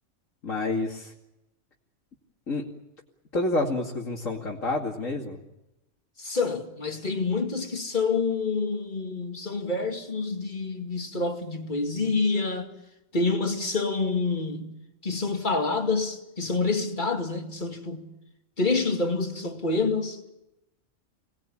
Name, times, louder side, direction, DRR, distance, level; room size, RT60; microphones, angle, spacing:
voice 1, 0.4-1.1 2.5-2.7 3.3-5.4, left 2 dB, 70° left, 3.0 m, -28 dB
voice 2, 6.2-12.7 13.1-14.8 15.0-18.1 18.6-20.2, left 3 dB, 35° left, 2.4 m, -27 dB
26.5 x 20.0 x 8.7 m
omnidirectional pair, 1.4 m